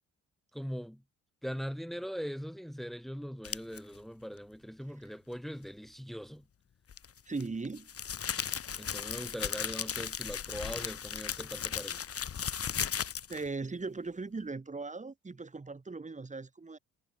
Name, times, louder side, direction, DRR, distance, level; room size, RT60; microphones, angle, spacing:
voice 1, 0.5-1.0 1.4-6.4 8.8-12.0, equal, ahead, 3.6 m, -41 dB
sound 1, 3.4-3.8 6.9-13.5, left 8 dB, 50° left, 3.5 m, -36 dB
voice 2, 7.3-7.9 13.3-16.8, right 3 dB, 25° right, 5.4 m, -38 dB
cardioid pair, 90°, 30 cm